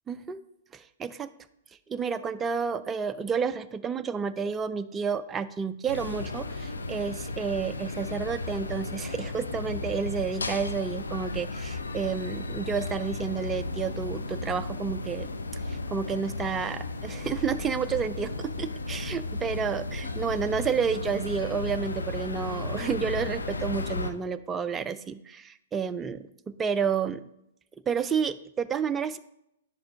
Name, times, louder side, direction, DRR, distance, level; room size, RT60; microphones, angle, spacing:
voice 1, 0.1-0.4 0.7-1.3 1.9-15.3 15.5-26.3 26.6-27.2 27.9-29.2, right 6 dB, 15° right, 10 dB, 0.4 m, -30 dB
sound 1, 5.9-24.1, left 3 dB, 90° left, 0.6 m, -34 dB
10.5 x 5.1 x 2.6 m, 0.77 s
hypercardioid pair, 120°, 0 cm